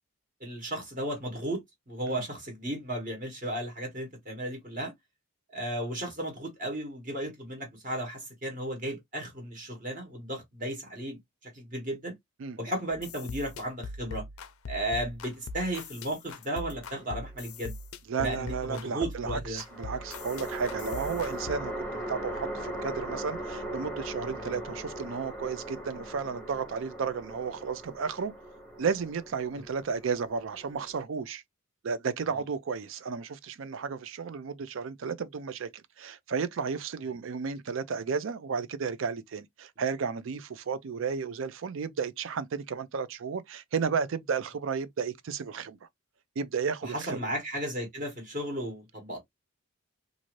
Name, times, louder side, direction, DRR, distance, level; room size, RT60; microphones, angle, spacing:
voice 1, 0.4-4.9 5.5-11.2 11.5-12.1 12.6-14.2 14.7-17.7 18.2-19.6 24.4-24.6 46.8-49.2, right 1 dB, 40° right, 1.2 m, -34 dB
sound 1, 12.9-21.5, left 3 dB, 75° left, 0.5 m, -41 dB
sound 2, 16.5-17.4 19.7-31.0, right 1 dB, 10° left, 0.7 m, -39 dB
voice 2, 18.1-28.3 28.8-31.4 31.8-45.8 46.4-47.3, right 5 dB, 60° right, 0.4 m, -33 dB
2.6 x 2.5 x 3.0 m
head